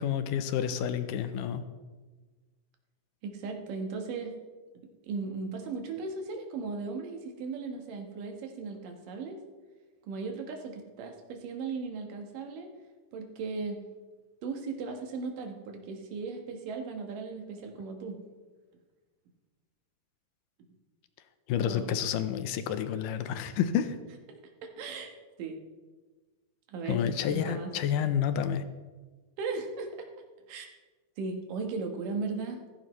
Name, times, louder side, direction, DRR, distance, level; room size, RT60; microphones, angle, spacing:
voice 1, 0.0-1.6 21.5-24.0 26.9-28.6, left 9 dB, 90° left, 10 dB, 2.4 m, -29 dB
voice 2, 3.2-4.3 5.0-9.4 10.1-12.7 13.1-13.8 14.4-18.2 21.6-21.9 24.6-25.1 25.4-25.6 26.7-27.0 27.3-27.7 29.4-30.1 30.5-30.7 31.2-32.6, right 4 dB, 90° right, 4 dB, 3.0 m, -37 dB
15.5 x 14.5 x 3.2 m, 1.3 s
omnidirectional pair, 3.7 m